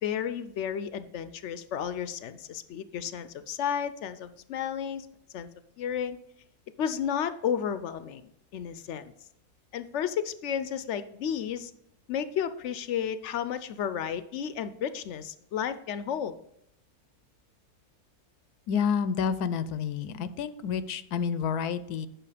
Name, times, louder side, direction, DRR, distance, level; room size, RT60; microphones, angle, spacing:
voice 1, 0.0-5.1 5.3-5.5 5.8-6.2 6.8-9.1 9.7-11.7 12.1-16.4, left 8 dB, 65° left, 13 dB, 0.8 m, -32 dB
voice 2, 18.7-22.1, left 7 dB, 80° left, 14 dB, 1.1 m, -29 dB
9.0 x 6.3 x 4.9 m, 0.77 s
omnidirectional pair, 1.6 m